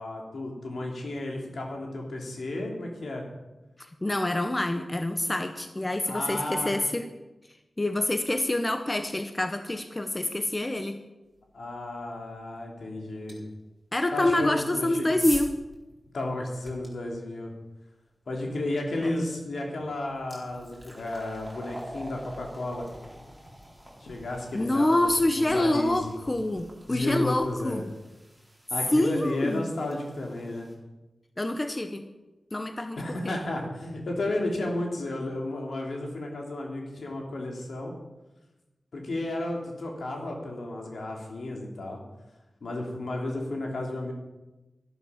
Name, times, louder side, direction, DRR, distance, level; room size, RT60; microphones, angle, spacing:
voice 1, 0.0-3.2 6.0-6.7 11.5-13.4 14.1-15.1 16.1-17.5 18.3-22.9 24.0-25.1 25.4-26.2 26.9-27.8 28.7-30.7 33.0-37.9 38.9-42.0 42.6-44.1, left 1 dB, 80° left, 0 dB, 3.2 m, -33 dB
voice 2, 4.0-7.0 7.8-11.0 13.9-15.5 19.0-19.3 24.5-27.9 28.9-29.7 31.4-32.1 32.5-33.4, left 1 dB, 25° left, 8 dB, 0.9 m, -26 dB
sound 1, 13.3-13.4 14.4-16.9 19.2-19.3 19.8-30.7, equal, 5° right, 3.9 m, -44 dB
12.5 x 12.0 x 5.8 m, 1.1 s
wide cardioid pair, 90°, 0 cm